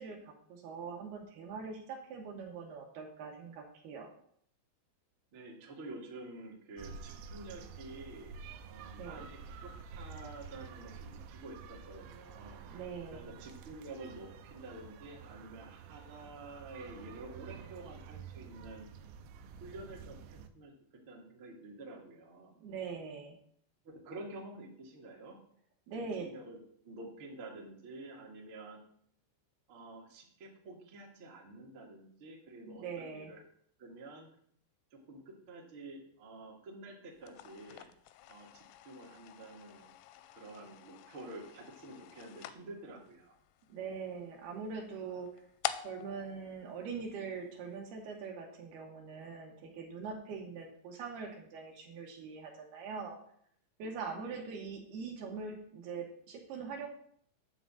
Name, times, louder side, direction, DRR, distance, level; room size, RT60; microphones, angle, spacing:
voice 1, 0.0-4.1 9.0-9.2 12.7-13.2 22.6-23.4 25.9-26.3 32.6-33.3 43.7-45.3 45.8-53.2 53.8-56.9, right 5 dB, 70° right, 1 dB, 2.8 m, -42 dB
voice 2, 5.3-8.4 8.6-12.7 13.1-18.9 19.6-20.7 21.1-22.6 23.8-25.4 26.2-26.6 26.8-28.8 29.7-33.4 33.8-34.3 34.9-37.9 38.3-38.5 38.8-39.9 40.3-43.3 54.1-54.4, right 2 dB, 50° right, -2 dB, 1.6 m, -49 dB
sound 1, 6.8-20.5, right 6 dB, 85° right, 3.0 m, -50 dB
sound 2, 37.2-47.5, left 13 dB, 85° left, 2.5 m, -47 dB
10.0 x 4.0 x 7.4 m, 0.64 s
omnidirectional pair, 5.2 m